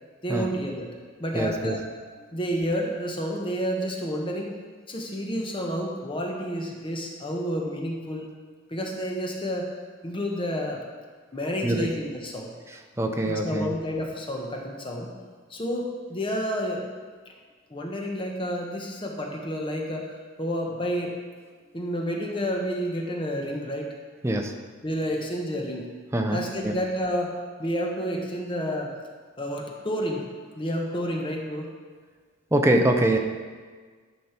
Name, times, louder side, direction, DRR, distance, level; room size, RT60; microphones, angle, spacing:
voice 1, 0.2-0.9 1.2-1.8 2.3-4.6 4.9-8.3 8.7-9.7 10.0-10.8 11.3-12.5 13.2-15.1 15.5-16.8 17.7-21.2 21.7-23.9 24.8-25.9 26.3-28.9 29.4-30.3 30.6-31.7, equal, 25° left, 0 dB, 1.0 m, -30 dB
voice 2, 1.3-1.8 11.6-11.9 13.0-13.7 24.2-24.6 26.1-26.8 32.5-33.2, right 1 dB, 15° right, 4 dB, 0.6 m, -24 dB
11.0 x 5.4 x 4.4 m, 1.5 s
head